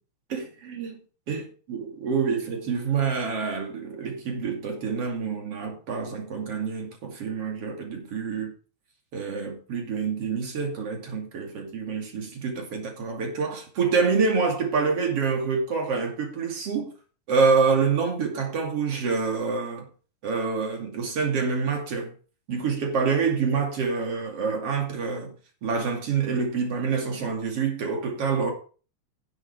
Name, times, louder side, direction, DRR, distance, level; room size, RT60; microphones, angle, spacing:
voice 1, 0.3-1.0 1.3-8.5 9.1-16.9 17.3-19.9 20.2-22.1 22.5-25.3 25.6-28.5, right 5 dB, 55° right, 3.5 m, -27 dB
10.0 x 7.8 x 4.8 m
omnidirectional pair, 3.3 m